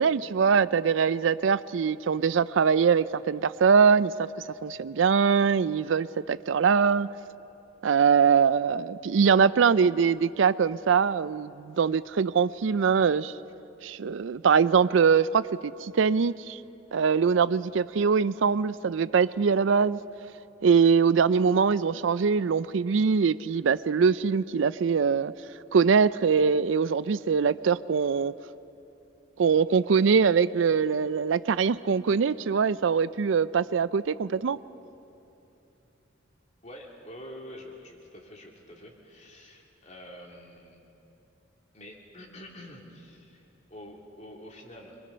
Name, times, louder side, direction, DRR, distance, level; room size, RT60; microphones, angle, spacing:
voice 1, 0.0-4.3 4.6-7.1 7.8-13.3 13.8-16.6 16.9-20.0 20.6-25.3 25.7-28.3 29.4-34.6, right 6 dB, 75° right, 17 dB, 0.4 m, -23 dB
voice 2, 36.6-40.8 41.7-45.0, left 1 dB, 35° left, 0 dB, 2.7 m, -46 dB
25.5 x 23.0 x 5.6 m, 2.9 s
head